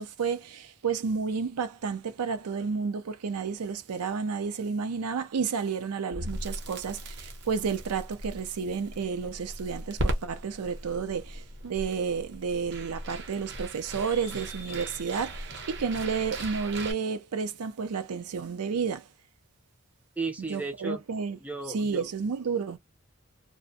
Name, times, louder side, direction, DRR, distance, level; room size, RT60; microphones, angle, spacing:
voice 1, 0.0-19.1 20.5-21.4 21.7-22.8, right 5 dB, 85° right, 0.5 m, -31 dB
Crackle, 6.1-16.9, right 1 dB, 50° right, 0.8 m, -38 dB
voice 2, 20.2-21.0 21.4-22.0, right 3 dB, 5° right, 0.4 m, -34 dB
2.5 x 2.2 x 2.5 m
head